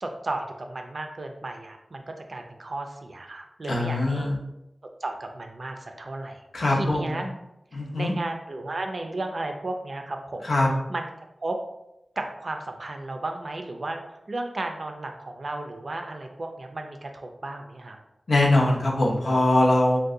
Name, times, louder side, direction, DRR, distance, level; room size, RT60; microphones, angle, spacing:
voice 1, 0.0-4.3 5.0-6.4 6.7-7.3 7.7-10.6 10.9-11.1 11.4-11.6 12.2-14.0 14.3-18.0, right 2 dB, 55° right, 4 dB, 0.4 m, -34 dB
voice 2, 3.6-4.4 6.5-7.3 7.7-8.1 10.4-10.7 18.3-20.0, left 1 dB, 85° left, -3 dB, 0.7 m, -22 dB
2.6 x 2.2 x 3.6 m, 0.87 s
wide cardioid pair, 80°, 0 cm